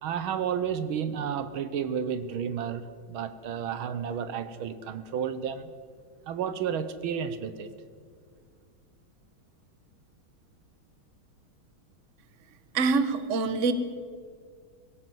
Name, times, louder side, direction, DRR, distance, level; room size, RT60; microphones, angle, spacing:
voice 1, 0.0-5.7 6.3-7.7, right 8 dB, 80° right, 12 dB, 1.8 m, -32 dB
voice 2, 12.7-13.7, right 4 dB, 40° right, 11 dB, 1.4 m, -25 dB
21.5 x 16.5 x 7.7 m, 2.1 s
omnidirectional pair, 2.2 m